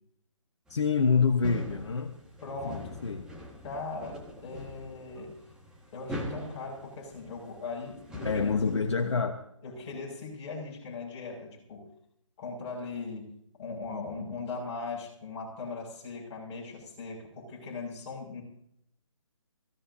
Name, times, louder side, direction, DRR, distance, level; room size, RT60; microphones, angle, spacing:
voice 1, 0.7-2.1 2.6-3.3 8.2-9.4, left 5 dB, 60° left, 5 dB, 1.2 m, -27 dB
sound 1, 0.7-9.2, left 1 dB, 5° right, 1.6 m, -43 dB
voice 2, 2.4-3.0 3.6-5.4 5.9-8.5 9.6-11.9 12.4-18.4, left 3 dB, 20° left, -4 dB, 6.2 m, -39 dB
23.0 x 16.5 x 2.8 m, 0.73 s
figure-of-eight pair, 150°, 16 cm